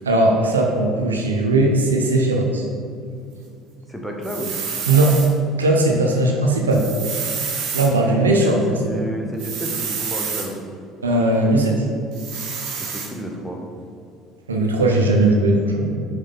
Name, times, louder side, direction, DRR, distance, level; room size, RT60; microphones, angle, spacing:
voice 1, 0.1-2.6 4.8-5.2 5.6-6.9 7.7-8.6 8.9-9.0 11.0-11.9 14.5-16.0, right 2 dB, 85° right, 0 dB, 0.6 m, -18 dB
voice 2, 3.9-4.6 8.1-10.6 12.8-13.6, equal, ahead, 0 dB, 1.1 m, -31 dB
sound 1, 4.2-5.3 6.7-7.9 9.4-10.5 12.1-13.1, right 6 dB, 55° right, 1.0 m, -28 dB
6.2 x 4.4 x 3.9 m, 2.4 s
figure-of-eight pair, 60°, 0 cm